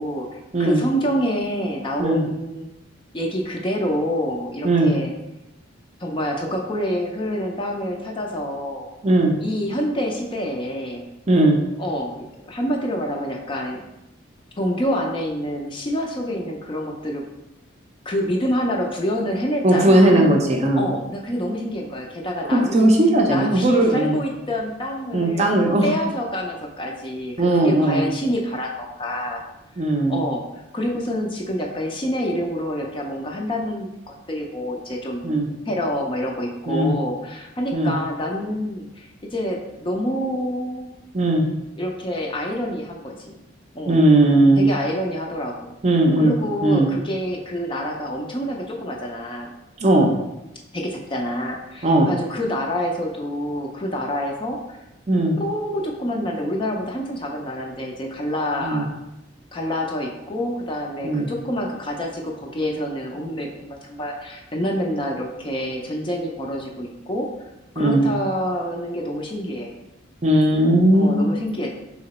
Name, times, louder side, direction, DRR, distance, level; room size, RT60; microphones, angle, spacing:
voice 1, 0.0-2.7 3.1-5.1 6.0-8.9 9.4-11.0 11.8-13.8 14.6-17.2 18.1-20.3 20.7-22.9 23.3-25.5 25.8-29.4 30.1-35.2 35.7-40.9 41.8-43.4 43.7-44.0 44.6-45.7 46.2-49.5 50.7-54.8 55.4-58.9 59.5-67.3 67.8-69.7 70.9-71.7, equal, 25° left, 1 dB, 0.4 m, -27 dB
voice 2, 9.0-9.3 11.3-11.6 19.6-20.8 22.5-24.2 25.1-25.9 27.4-28.0 29.8-30.2 35.2-35.5 36.7-37.0 37.7-37.9 41.1-41.5 43.9-44.6 45.8-46.3 46.6-46.9 49.8-50.1 51.8-52.1 55.1-55.4 58.6-58.8 61.0-61.3 67.8-68.1 70.2-71.4, right 1 dB, 30° right, 1 dB, 0.5 m, -17 dB
3.7 x 2.9 x 4.1 m, 0.93 s
head